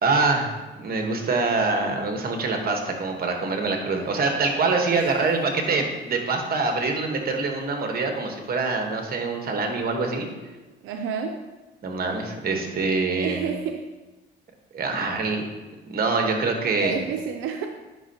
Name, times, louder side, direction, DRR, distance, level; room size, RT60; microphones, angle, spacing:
voice 1, 0.0-10.3 11.8-13.4 14.7-15.4 15.9-16.9, right 3 dB, 50° right, 3 dB, 1.3 m, -25 dB
voice 2, 4.9-5.2 5.8-5.9 10.8-11.4 12.0-12.1 13.1-13.9 16.8-17.7, right 7 dB, 90° right, 4 dB, 0.5 m, -30 dB
9.7 x 5.4 x 2.9 m, 1.2 s
cardioid pair, 90°, 20 cm